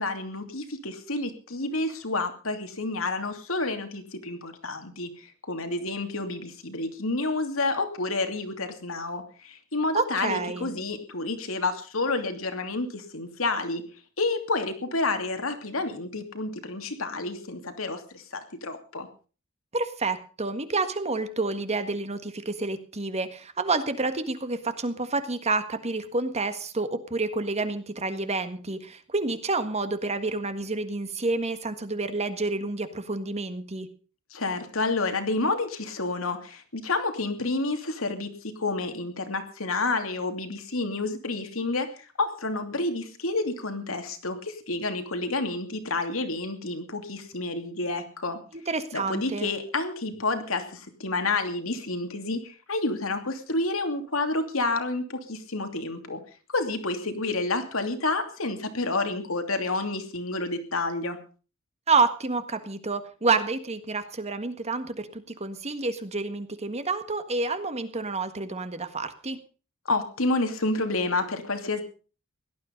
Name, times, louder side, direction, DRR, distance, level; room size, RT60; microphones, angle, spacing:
voice 1, 0.0-13.8 14.2-19.1 34.3-48.4 48.9-56.2 56.5-61.2 69.9-71.8, left 2 dB, 75° left, 7 dB, 2.8 m, -29 dB
voice 2, 9.9-10.7 19.7-33.9 48.5-49.5 61.9-69.4, right 3 dB, 30° right, 10 dB, 1.7 m, -29 dB
17.5 x 12.5 x 5.3 m, 0.38 s
head